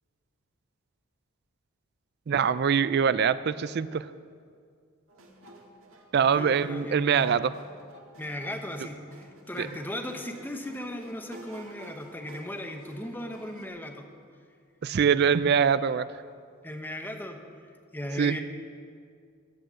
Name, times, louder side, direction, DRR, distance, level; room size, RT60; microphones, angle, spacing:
voice 1, 2.3-4.1 6.1-7.5 9.6-9.7 14.8-16.1 18.2-18.4, right 7 dB, 50° right, 15 dB, 0.4 m, -23 dB
sound 1, 5.1-13.7, right 1 dB, 75° right, 1.8 m, -51 dB
voice 2, 6.2-7.3 8.2-14.1 16.6-17.4 17.9-18.4, left 1 dB, 10° left, 4 dB, 1.0 m, -37 dB
15.0 x 8.1 x 7.7 m, 2.2 s
head